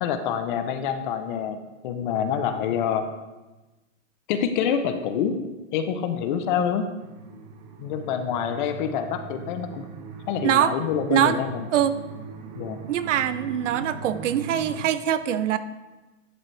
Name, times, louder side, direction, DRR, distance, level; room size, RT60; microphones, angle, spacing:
voice 1, 0.0-3.0 4.3-5.3 5.7-6.9 7.8-9.8 10.3-11.7 12.6-12.8, left 8 dB, 40° left, 8 dB, 0.8 m, -26 dB
sound 1, 7.0-14.8, right 6 dB, 35° right, 1.0 m, -40 dB
voice 2, 10.4-10.7 11.1-11.4 11.7-11.9 12.9-15.6, right 10 dB, 65° right, 13 dB, 0.7 m, -23 dB
11.0 x 7.3 x 3.3 m, 1.1 s
hypercardioid pair, 145°, 39 cm